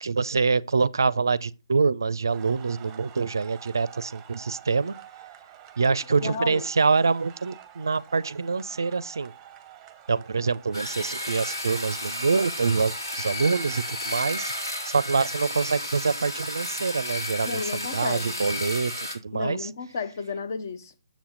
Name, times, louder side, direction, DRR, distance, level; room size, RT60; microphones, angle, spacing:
voice 1, 0.0-4.9 5.8-9.3 10.1-14.5 14.8-19.7, right 4 dB, 65° right, 0.4 m, -25 dB
sound 1, 2.3-14.9, right 10 dB, 15° right, 0.8 m, -48 dB
voice 2, 6.1-6.6 17.5-18.4 19.3-20.9, left 4 dB, 45° left, 0.6 m, -32 dB
sound 2, 10.7-19.1, left 1 dB, 85° left, 2.4 m, -33 dB
7.2 x 7.0 x 3.8 m
figure-of-eight pair, 135°, 2 cm